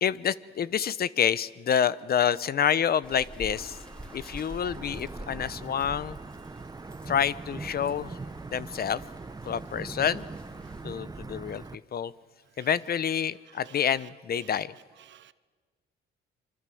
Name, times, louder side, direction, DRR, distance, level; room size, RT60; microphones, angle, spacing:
voice 1, 0.0-3.8 4.1-6.2 7.0-8.2 8.5-9.0 9.4-10.3 10.8-12.1 12.6-14.7, left 8 dB, 50° left, 0.8 m, -28 dB
sound 1, 3.0-10.8, equal, 5° left, 3.5 m, -47 dB
Wind / Thunder / Rain, 3.5-11.8, right 3 dB, 20° right, 0.8 m, -42 dB
voice 2, 13.5-13.9 14.4-14.6 15.0-15.3, right 11 dB, 65° right, 1.1 m, -53 dB
26.0 x 24.0 x 7.8 m
cardioid pair, 90°, 20 cm